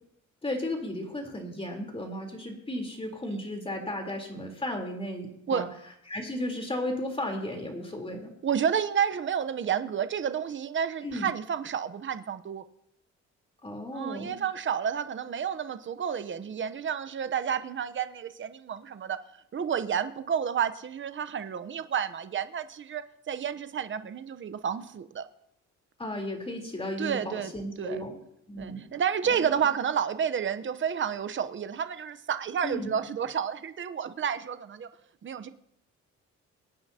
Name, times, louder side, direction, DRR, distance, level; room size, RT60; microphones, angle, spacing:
voice 1, 0.4-5.7 6.1-8.3 11.0-11.3 13.6-14.3 26.0-28.2 28.5-28.8 29.2-29.5 32.6-32.9, left 1 dB, 20° left, 2 dB, 3.6 m, -34 dB
voice 2, 8.4-12.6 13.9-19.2 19.5-25.3 27.0-27.5 27.8-28.0 28.6-34.9 35.2-35.5, right 8 dB, 40° right, 11 dB, 0.9 m, -30 dB
23.5 x 9.5 x 2.9 m, 0.75 s
cardioid pair, 90°, 30 cm